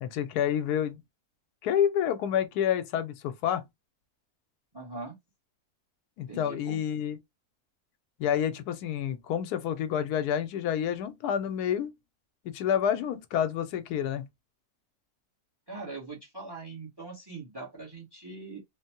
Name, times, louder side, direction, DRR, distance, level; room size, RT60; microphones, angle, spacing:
voice 1, 0.0-1.0 1.6-3.6 6.2-7.2 8.2-11.9 12.4-14.2, left 9 dB, 90° left, 1.1 m, -28 dB
voice 2, 4.7-5.2 6.3-6.8 15.7-18.6, right 3 dB, 20° right, 0.7 m, -41 dB
3.3 x 2.1 x 2.8 m
omnidirectional pair, 1.6 m